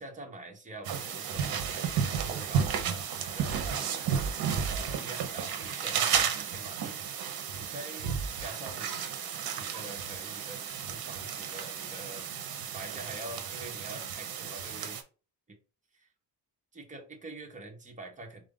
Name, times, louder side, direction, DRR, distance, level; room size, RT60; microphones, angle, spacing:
voice 1, 0.0-4.1 4.7-7.0 7.5-9.1 9.5-12.3 12.7-15.0 15.5-15.6 15.9-16.0 16.7-18.5, right 2 dB, 20° right, 2 dB, 0.8 m, -46 dB
sound 1, 0.8-15.0, right 7 dB, 65° right, 0.8 m, -33 dB
3.8 x 2.4 x 3.7 m, 0.34 s
wide cardioid pair, 160°, 40 cm